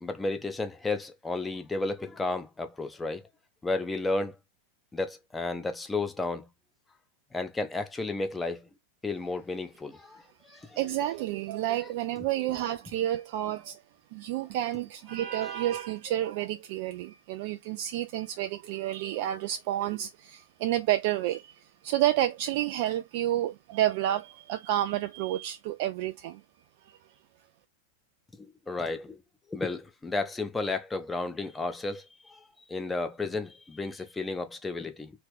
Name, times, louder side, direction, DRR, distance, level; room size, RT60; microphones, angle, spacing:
voice 1, 0.0-3.2 3.6-4.3 4.9-6.5 7.3-8.7 9.0-10.2 10.7-10.8 28.7-29.2 29.5-32.4 32.7-35.1, left 3 dB, 10° left, 0.7 m, -32 dB
voice 2, 10.8-13.8 14.1-21.5 21.8-26.4 26.9-27.0, right 13 dB, 50° right, 0.3 m, -30 dB
3.0 x 2.9 x 3.4 m
figure-of-eight pair, 90°, 0 cm